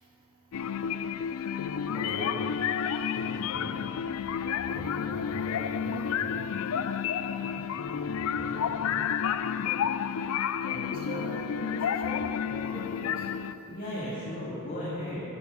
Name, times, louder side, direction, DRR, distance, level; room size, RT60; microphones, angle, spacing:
sound 1, 0.5-13.5, left 7 dB, 70° left, 0.4 m, -30 dB
voice 1, 1.9-2.4 4.7-6.4 10.6-13.3, right 1 dB, 25° right, -3 dB, 2.0 m, -41 dB
voice 2, 3.0-3.7 7.2-9.1 13.7-15.2, left 1 dB, 40° left, -9 dB, 2.4 m, -38 dB
11.0 x 9.0 x 6.3 m, 3.0 s
head